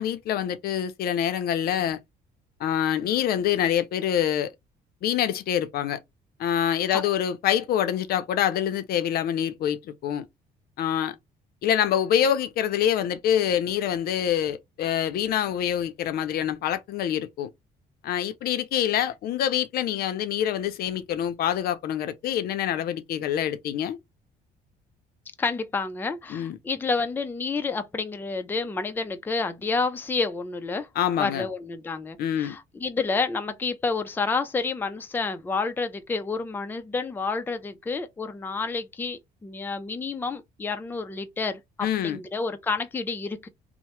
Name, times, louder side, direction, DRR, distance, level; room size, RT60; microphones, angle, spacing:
voice 1, 0.0-2.0 2.6-4.5 5.0-6.0 6.4-10.3 10.8-11.2 11.6-17.5 18.0-24.0 26.3-26.6 31.0-31.5 32.2-32.6 41.8-42.2, left 10 dB, 65° left, 0.5 m, -26 dB
voice 2, 25.4-30.9 31.2-41.6 42.0-43.5, left 4 dB, 10° left, 0.4 m, -29 dB
2.8 x 2.1 x 3.0 m
cardioid pair, 110°, 17 cm